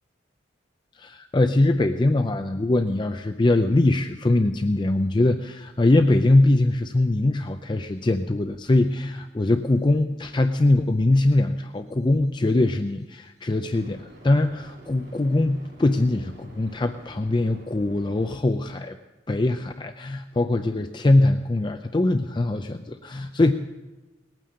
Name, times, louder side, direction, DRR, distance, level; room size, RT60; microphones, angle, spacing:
voice 1, 0.9-19.0 19.3-23.5, left 2 dB, 25° left, 7 dB, 0.4 m, -22 dB
sound 1, 8.8-9.0 13.7-18.4, right 1 dB, 60° right, 2.7 m, -48 dB
20.0 x 9.1 x 6.4 m, 1.1 s
head